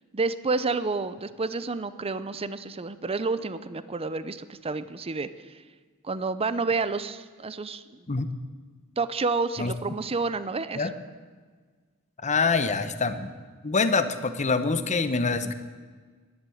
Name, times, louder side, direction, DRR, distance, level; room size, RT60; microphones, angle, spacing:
voice 1, 0.1-5.3 6.0-7.8 9.0-10.9 15.4-15.5, right 3 dB, 25° right, 14 dB, 0.6 m, -29 dB
voice 2, 12.2-13.3 13.6-15.5, left 4 dB, 35° left, 11 dB, 0.9 m, -25 dB
11.5 x 11.0 x 9.1 m, 1.5 s
head